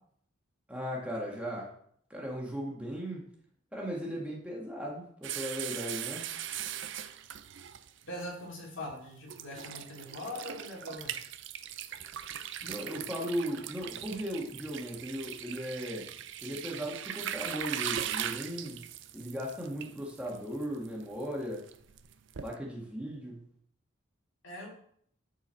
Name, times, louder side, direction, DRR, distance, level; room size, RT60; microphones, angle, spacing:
voice 1, 0.7-1.7 2.1-3.3 3.7-6.3 12.6-16.1 16.4-18.9 19.1-21.6 22.4-23.5, equal, 5° right, -3 dB, 1.6 m, -37 dB
sound 1, 5.2-8.3 8.9-9.0 9.3-22.6, right 10 dB, 60° right, 0.5 m, -40 dB
voice 2, 8.1-11.2 24.4-24.7, left 1 dB, 70° left, -2 dB, 3.0 m, -41 dB
11.0 x 4.7 x 4.5 m, 0.64 s
head